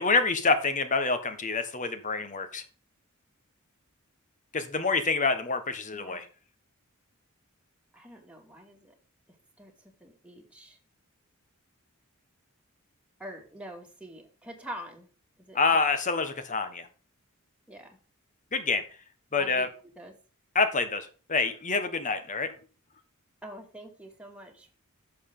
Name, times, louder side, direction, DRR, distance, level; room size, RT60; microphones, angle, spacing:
voice 1, 0.0-2.6 4.5-6.2 15.5-16.9 18.5-18.8 19.3-19.7 20.5-22.5, left 4 dB, 35° left, 10 dB, 1.4 m, -27 dB
voice 2, 5.9-6.2 7.9-8.9 9.6-10.8 13.2-15.1 15.4-15.6 17.7-18.0 19.4-19.7 20.0-20.1 23.4-24.7, right 1 dB, 5° right, 0 dB, 2.4 m, -45 dB
11.0 x 7.0 x 3.9 m, 0.37 s
head